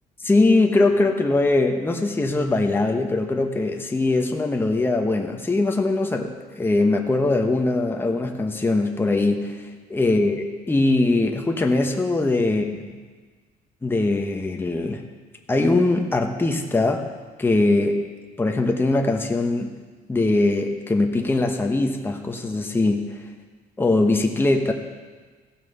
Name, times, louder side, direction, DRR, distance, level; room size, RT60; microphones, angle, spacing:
voice 1, 0.2-12.9 13.8-15.0 15.5-17.1 17.4-18.0 18.4-19.7 20.1-23.2 23.8-24.7, left 2 dB, 15° left, 3 dB, 1.0 m, -21 dB
16.0 x 6.4 x 5.4 m, 1.4 s
cardioid pair, 110°, 17 cm